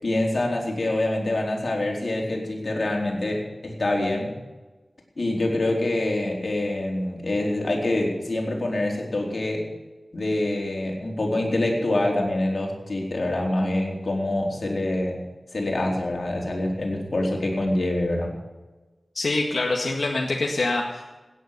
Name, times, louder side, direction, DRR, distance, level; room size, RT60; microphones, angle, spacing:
voice 1, 0.0-4.3 5.2-9.6 10.1-15.2 15.5-18.3, left 1 dB, 65° left, -1 dB, 4.2 m, -25 dB
voice 2, 19.1-21.2, left 2 dB, 80° left, -1 dB, 1.8 m, -25 dB
17.0 x 10.5 x 6.7 m, 1.2 s
wide cardioid pair, 65°, 0 cm